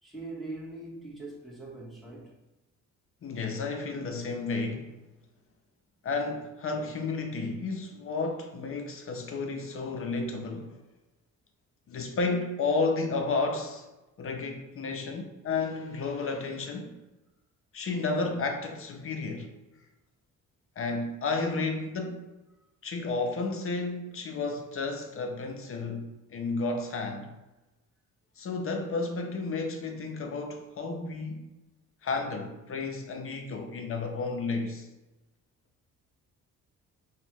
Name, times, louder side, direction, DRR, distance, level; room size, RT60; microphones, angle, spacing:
voice 1, 0.0-2.3, right 2 dB, ahead, 1.3 m, -41 dB
voice 2, 3.2-5.0 6.0-10.8 11.9-13.9 14.2-17.0 17.7-19.5 20.8-22.3 22.8-27.3 28.4-31.5 32.0-34.9, left 3 dB, 45° left, 0.7 m, -32 dB
5.2 x 2.4 x 3.0 m
cardioid pair, 90°, 30 cm